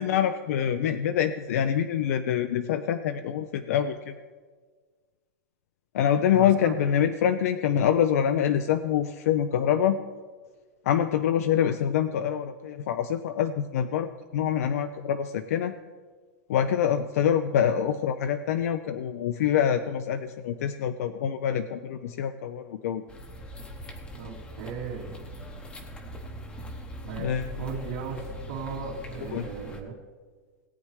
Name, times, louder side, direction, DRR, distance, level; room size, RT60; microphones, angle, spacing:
voice 1, 0.0-4.1 5.9-10.0 10.8-15.7 16.5-23.0 27.2-27.7 29.3-29.5, left 9 dB, 60° left, 9 dB, 0.5 m, -25 dB
voice 2, 6.3-6.7 24.2-25.2 27.0-27.3 27.6-29.9, right 6 dB, 75° right, -10 dB, 2.5 m, -36 dB
sound 1, 23.1-29.8, equal, 10° left, 0.9 m, -41 dB
18.0 x 8.8 x 3.2 m, 1.5 s
supercardioid pair, 170°, 9 cm